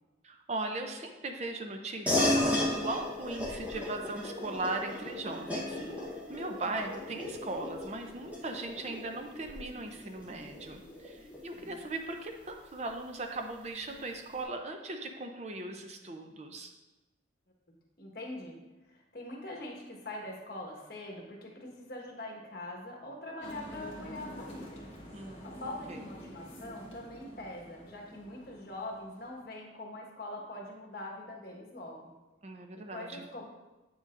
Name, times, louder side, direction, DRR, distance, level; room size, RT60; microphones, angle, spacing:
voice 1, 0.2-5.8 6.3-16.7 25.1-25.5 25.9-26.0 32.4-33.3, right 2 dB, 35° right, 4 dB, 0.5 m, -38 dB
sound 1, 2.1-11.9, left 1 dB, 10° right, 1.0 m, -35 dB
voice 2, 11.5-11.9 18.0-18.6 18.8-24.8 25.2-32.1 32.9-33.5, left 1 dB, 55° left, 0 dB, 1.3 m, -43 dB
sound 2, 23.4-29.4, equal, 30° left, 1.4 m, -47 dB
8.3 x 6.5 x 2.5 m, 1.1 s
head